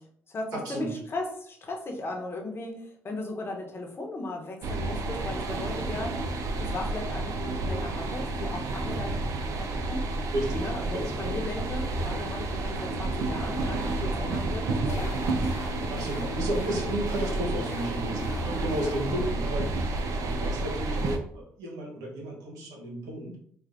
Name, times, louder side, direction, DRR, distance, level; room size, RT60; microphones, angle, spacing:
voice 1, 0.0-6.3 6.6-10.1 10.6-15.4 16.2-16.5 19.1-19.3, left 2 dB, 40° left, 1 dB, 0.9 m, -37 dB
voice 2, 0.5-0.9 10.3-11.4 15.9-23.3, right 1 dB, 80° right, 0 dB, 1.1 m, -33 dB
sound 1, 4.6-21.2, right 2 dB, 65° right, 0.5 m, -30 dB
sound 2, 14.9-19.3, left 3 dB, 80° left, 0.5 m, -41 dB
4.5 x 2.4 x 2.6 m, 0.62 s
supercardioid pair, 65°, 6 cm